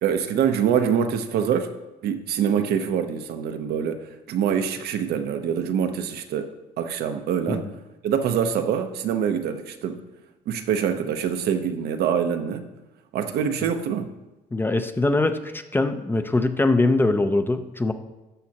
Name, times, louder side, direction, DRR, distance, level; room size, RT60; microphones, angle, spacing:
voice 1, 0.0-1.7 2.0-4.0 4.3-7.7 8.0-10.0 10.5-12.7 13.1-14.1, right 8 dB, 70° right, 7 dB, 0.8 m, -25 dB
voice 2, 14.5-17.9, left 2 dB, 10° left, 8 dB, 0.5 m, -22 dB
12.5 x 6.3 x 2.9 m, 1.0 s
cardioid pair, 110°, 17 cm